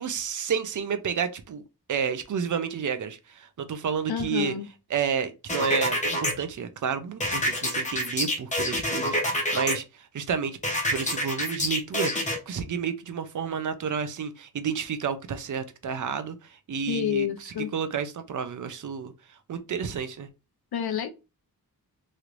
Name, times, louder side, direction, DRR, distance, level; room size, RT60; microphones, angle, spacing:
voice 1, 0.0-1.6 1.9-4.5 4.9-10.6 10.9-20.3, right 7 dB, 55° right, 0.5 m, -31 dB
voice 2, 4.1-4.7 16.9-17.7 20.7-21.1, left 9 dB, 90° left, 0.6 m, -28 dB
sound 1, 5.5-6.3 7.2-9.7 10.6-12.4, left 1 dB, 20° left, 0.8 m, -27 dB
3.1 x 3.0 x 2.5 m
wide cardioid pair, 180°, 37 cm